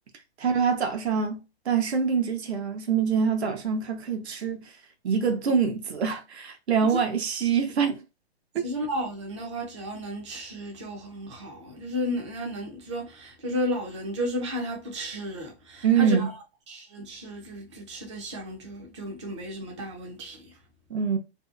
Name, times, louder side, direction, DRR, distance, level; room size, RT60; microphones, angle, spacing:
voice 1, 0.4-4.7 5.0-8.0 8.5-8.6 15.8-16.3 20.9-21.2, right 6 dB, 80° right, 0.7 m, -25 dB
voice 2, 8.6-16.2 16.7-20.6, equal, 30° right, 0.4 m, -33 dB
2.6 x 2.2 x 2.4 m
hypercardioid pair, 170°, 32 cm